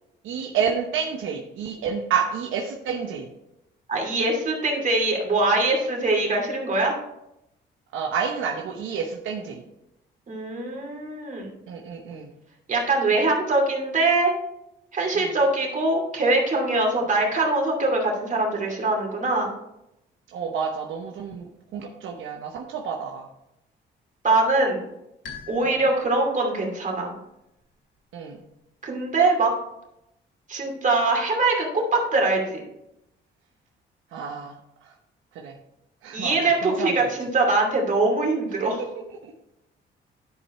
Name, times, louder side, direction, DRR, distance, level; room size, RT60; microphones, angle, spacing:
voice 1, 0.2-3.3 7.9-9.6 11.7-12.3 15.1-15.3 20.3-23.3 25.6-25.8 28.1-28.4 34.1-34.6 34.8-34.9 35.3-35.6 36.0-36.9 38.6-39.3, right 6 dB, 80° right, 1 dB, 1.0 m, -30 dB
voice 2, 3.9-6.9 10.3-11.5 12.7-14.3 14.9-19.5 24.2-24.8 25.5-27.1 28.8-29.5 30.5-32.6 36.1-38.8, right 2 dB, 40° right, 0 dB, 2.7 m, -23 dB
sound 1, 25.2-26.8, left 5 dB, 65° left, 2.9 m, -44 dB
11.0 x 4.9 x 4.3 m, 0.85 s
cardioid pair, 90°, 20 cm